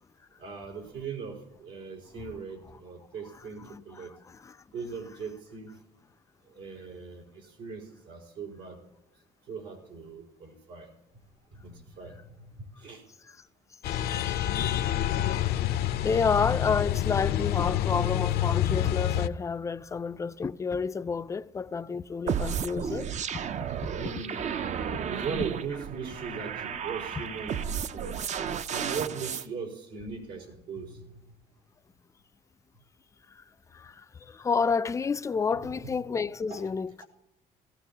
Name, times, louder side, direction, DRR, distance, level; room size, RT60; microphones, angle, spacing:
voice 1, 0.4-4.1 4.7-5.7 6.4-8.8 9.5-10.9 11.5-13.0 23.9-24.5 25.1-28.1 28.7-31.4 35.6-35.9 36.5-36.7, right 5 dB, 90° right, 4.1 m, -39 dB
voice 2, 3.6-4.6 13.9-14.4 15.3-15.4 16.0-23.1 27.2-27.3 33.3-33.4 33.7-36.9, left 5 dB, 20° left, 0.4 m, -30 dB
sound 1, 13.8-19.3, left 12 dB, 70° left, 0.6 m, -27 dB
sound 2, 22.3-29.5, right 7 dB, 45° right, 0.5 m, -33 dB
17.5 x 14.5 x 2.9 m
cardioid pair, 110°, 17 cm